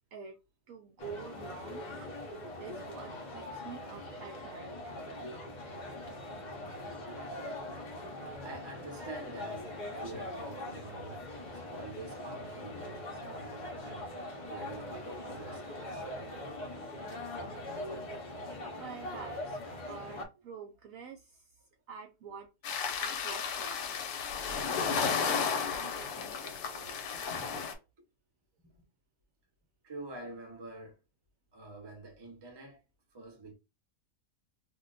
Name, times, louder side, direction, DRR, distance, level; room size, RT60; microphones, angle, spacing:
voice 1, 0.7-2.1 2.6-4.9 18.8-19.6 19.9-22.5 23.0-23.9 24.5-27.3 27.5-27.6, right 6 dB, 70° right, 0.8 m, -48 dB
sound 1, 1.0-20.2, left 1 dB, 50° left, 0.5 m, -42 dB
voice 2, 7.2-7.6 8.4-16.2 28.6-28.7 29.8-31.0 31.5-32.8 33.1-33.5, right 2 dB, 30° right, 0.4 m, -47 dB
sound 2, 22.6-27.7, left 6 dB, 90° left, 1.3 m, -33 dB
2.7 x 2.2 x 3.8 m
omnidirectional pair, 1.8 m